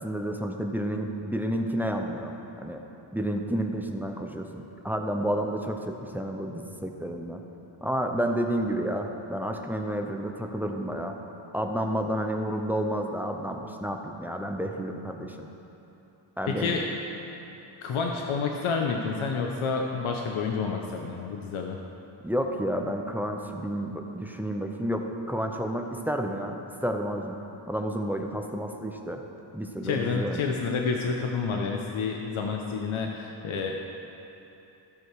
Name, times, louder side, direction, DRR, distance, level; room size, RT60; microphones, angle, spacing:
voice 1, 0.0-2.8 3.1-7.4 7.8-11.1 11.5-15.5 16.4-16.8 22.2-27.4 27.7-29.2 29.5-30.6, equal, 5° right, 3 dB, 0.5 m, -30 dB
voice 2, 16.5-16.9 17.8-21.8 29.8-33.7, left 5 dB, 90° left, 1 dB, 0.9 m, -29 dB
14.5 x 6.7 x 4.7 m, 2.9 s
wide cardioid pair, 160°, 47 cm